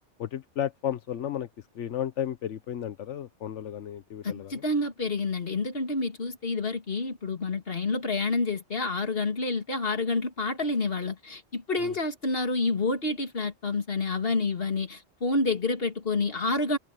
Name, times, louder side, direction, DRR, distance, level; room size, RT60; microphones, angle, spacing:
voice 1, 0.2-4.6 11.8-12.0, left 10 dB, 85° left, 1.2 m, -33 dB
voice 2, 4.2-16.8, left 3 dB, 55° left, 2.6 m, -28 dB
omnidirectional pair, 1.2 m